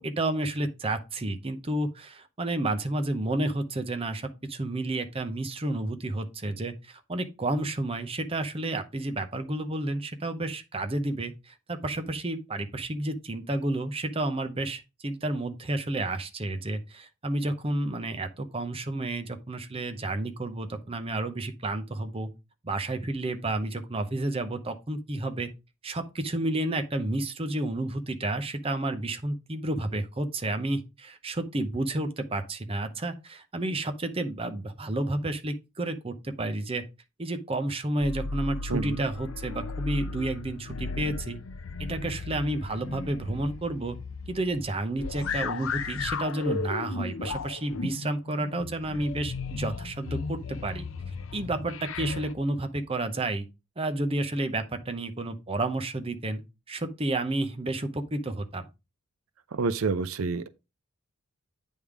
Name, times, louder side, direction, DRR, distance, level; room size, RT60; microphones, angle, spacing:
voice 1, 0.0-22.3 22.6-25.5 25.8-36.8 37.2-41.4 41.8-44.0 44.3-50.8 51.3-53.4 53.8-56.4 56.7-58.7, right 2 dB, 25° right, 0.7 m, -31 dB
sound 1, 38.0-52.3, left 4 dB, 75° left, 0.6 m, -35 dB
voice 2, 38.7-39.0 59.5-60.5, right 4 dB, 85° right, 0.5 m, -28 dB
8.4 x 3.6 x 4.7 m
head